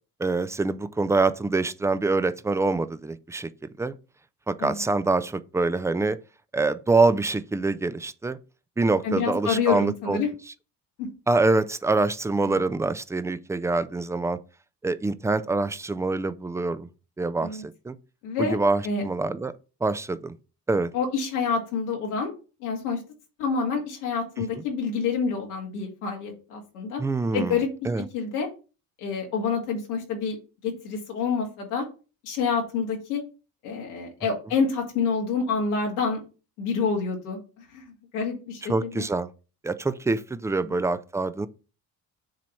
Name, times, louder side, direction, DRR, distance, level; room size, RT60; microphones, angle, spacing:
voice 1, 0.2-3.5 3.8-4.0 4.5-6.2 6.5-8.4 8.8-10.2 11.3-14.4 14.8-16.9 17.2-18.0 18.4-19.5 19.8-20.3 20.7-20.9 24.4-24.6 27.0-27.6 27.9-28.0 38.7-39.3 39.6-41.5, right 3 dB, 5° right, 0.4 m, -25 dB
voice 2, 9.0-10.3 11.0-11.1 12.5-12.6 17.4-17.6 18.2-18.6 18.8-19.0 20.9-22.3 22.6-23.0 23.4-27.0 27.3-27.7 28.1-28.5 29.0-30.4 30.6-31.8 32.2-33.2 33.6-36.2 36.6-37.8 38.1-39.0 40.6-40.8, left 5 dB, 85° left, 2.1 m, -27 dB
7.6 x 2.9 x 5.6 m
hypercardioid pair, 60°, 46 cm